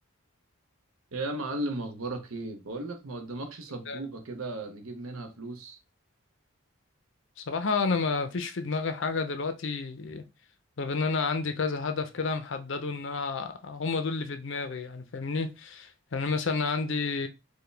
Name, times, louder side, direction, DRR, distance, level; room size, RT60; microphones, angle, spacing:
voice 1, 1.1-5.8, right 2 dB, 75° right, 0.8 m, -36 dB
voice 2, 7.4-10.2 10.8-17.3, left 4 dB, 55° left, 0.5 m, -30 dB
4.7 x 2.2 x 3.3 m
head